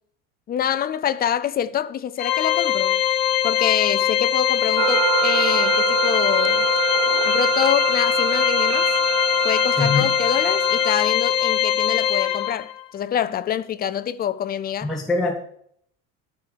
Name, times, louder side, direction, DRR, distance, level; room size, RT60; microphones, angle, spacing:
voice 1, 0.5-3.0 3.4-6.7 7.2-8.9 9.4-14.9, left 9 dB, 25° left, 0.5 m, -26 dB
Organ, 2.2-12.8, left 10 dB, 70° left, 1.4 m, -21 dB
sound 1, 4.8-10.9, right 13 dB, 50° right, 0.4 m, -26 dB
voice 2, 9.8-10.1 14.8-15.4, left 3 dB, ahead, 1.5 m, -23 dB
12.5 x 5.3 x 7.7 m
cardioid pair, 165°, 36 cm